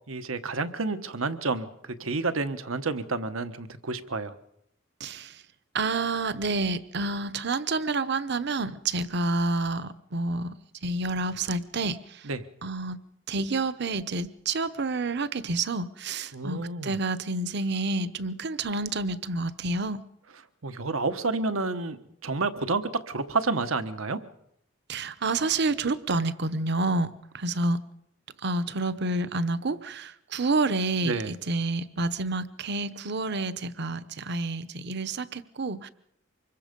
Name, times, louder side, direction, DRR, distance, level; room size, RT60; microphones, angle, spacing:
voice 1, 0.1-4.3 12.2-12.4 16.3-17.0 20.6-24.2 31.0-31.3, right 3 dB, 90° right, 10 dB, 1.2 m, -30 dB
voice 2, 5.0-5.3 5.7-10.6 10.8-12.0 12.6-13.0 13.3-20.0 24.9-27.1 27.3-27.8 28.4-35.9, right 3 dB, 55° right, 14 dB, 0.9 m, -29 dB
25.5 x 22.0 x 5.3 m, 0.77 s
head